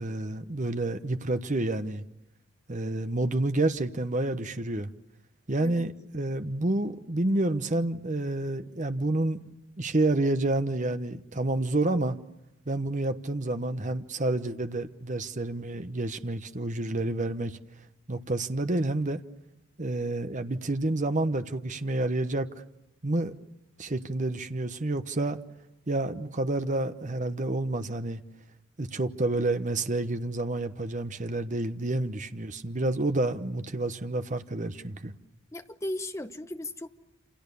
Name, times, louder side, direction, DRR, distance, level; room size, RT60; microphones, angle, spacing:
voice 1, 0.0-2.0 2.7-4.9 5.5-9.4 9.8-12.2 12.7-17.6 18.1-19.2 19.8-22.5 23.0-23.3 23.8-25.4 25.9-28.2 28.8-35.1, right 2 dB, 35° right, 1.0 m, -29 dB
voice 2, 35.5-36.9, left 1 dB, 15° left, 1.0 m, -36 dB
28.0 x 28.0 x 6.9 m
head